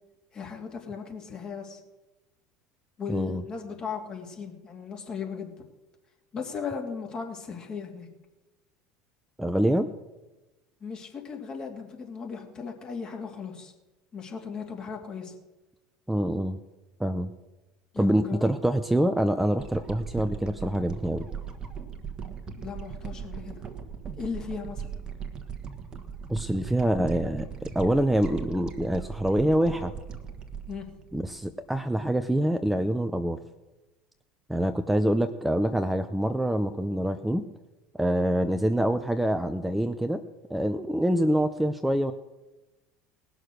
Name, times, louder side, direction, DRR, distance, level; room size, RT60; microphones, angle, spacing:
voice 1, 0.3-1.8 3.0-5.5 6.3-8.1 10.8-13.7 14.1-15.3 17.9-18.4 22.6-23.6 24.2-24.9 30.7-30.9, left 6 dB, 35° left, 2 dB, 2.8 m, -37 dB
voice 2, 3.1-3.4 9.4-9.9 16.1-16.6 17.0-17.3 18.0-21.3 26.3-29.9 31.1-33.4 34.5-37.5 37.9-40.2 40.5-42.1, right 1 dB, 5° right, 8 dB, 0.7 m, -25 dB
sound 1, 19.6-31.9 32.4-32.5, right 6 dB, 35° right, 1.4 m, -39 dB
18.5 x 6.5 x 6.4 m, 1.1 s
hypercardioid pair, 75°, 2 cm